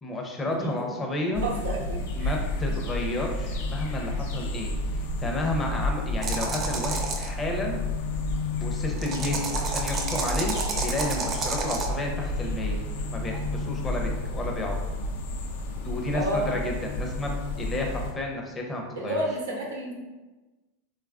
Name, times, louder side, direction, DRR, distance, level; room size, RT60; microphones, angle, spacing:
voice 1, 0.0-1.4 2.1-7.8 8.6-12.8 13.1-14.8 15.8-19.2, left 1 dB, 20° left, 0 dB, 0.5 m, -31 dB
sound 1, 1.3-18.1, left 2 dB, 75° left, 0.3 m, -31 dB
voice 2, 1.3-2.4 16.1-16.6 19.0-19.9, right 1 dB, 90° right, -1 dB, 0.6 m, -31 dB
sound 2, 6.2-7.3 9.0-11.9, right 4 dB, 35° right, 0.4 m, -30 dB
3.0 x 2.3 x 2.3 m, 1.2 s
hypercardioid pair, 105°, 0 cm